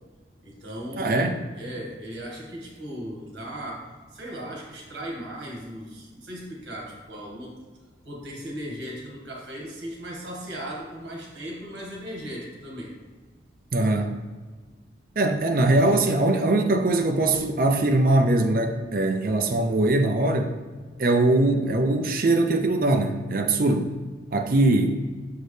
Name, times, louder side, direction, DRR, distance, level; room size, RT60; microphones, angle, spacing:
voice 1, 0.4-7.5 8.0-12.9, equal, 75° right, -2 dB, 1.7 m, -37 dB
voice 2, 1.0-1.4 13.7-14.1 15.2-20.5 21.0-23.9 24.3-25.0, right 2 dB, 50° right, 4 dB, 0.5 m, -21 dB
6.6 x 4.6 x 3.2 m, 1.4 s
head